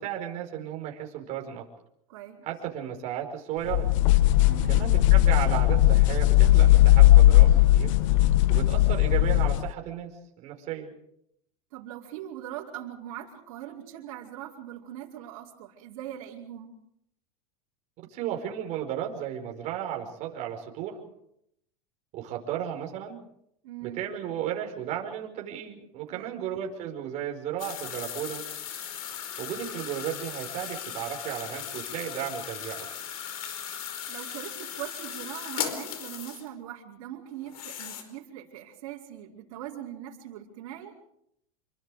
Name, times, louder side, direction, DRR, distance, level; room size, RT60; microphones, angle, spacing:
voice 1, 0.0-1.7 2.4-3.9 4.7-7.9 8.5-10.1 10.4-10.9 18.1-21.0 22.1-23.2 23.8-28.4 29.4-32.9, right 10 dB, 40° right, 2 dB, 5.1 m, -34 dB
voice 2, 2.1-2.5 4.5-4.8 11.7-16.7 23.6-24.0 26.1-26.4 34.1-40.9, right 11 dB, 65° right, -3 dB, 5.1 m, -41 dB
sound 1, 3.7-9.7, left 15 dB, 65° left, 0.9 m, -18 dB
sound 2, 27.6-36.5 37.4-38.0, left 9 dB, 85° left, 4.6 m, -37 dB
27.0 x 24.0 x 5.1 m, 0.76 s
supercardioid pair, 145°, 18 cm